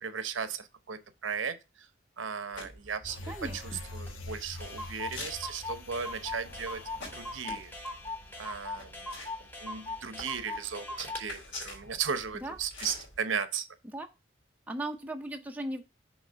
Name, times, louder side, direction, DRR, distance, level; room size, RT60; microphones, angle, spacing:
voice 1, 0.0-1.9 2.2-3.2 3.5-3.6 3.9-6.8 7.1-7.7 8.4-9.3 9.6-13.7, right 6 dB, 85° right, 0.8 m, -36 dB
sound 1, 2.5-13.2, left 2 dB, 75° left, 2.6 m, -47 dB
sound 2, 3.0-8.7 9.0-9.1, left 2 dB, 90° left, 0.9 m, -45 dB
voice 2, 3.3-3.8 12.3-12.6 13.8-14.1 14.7-15.8, right 1 dB, 10° right, 0.5 m, -37 dB
Clock, 4.1-4.2 4.3-4.4 4.6-11.3, left 2 dB, 10° left, 0.9 m, -40 dB
6.3 x 3.1 x 5.5 m
head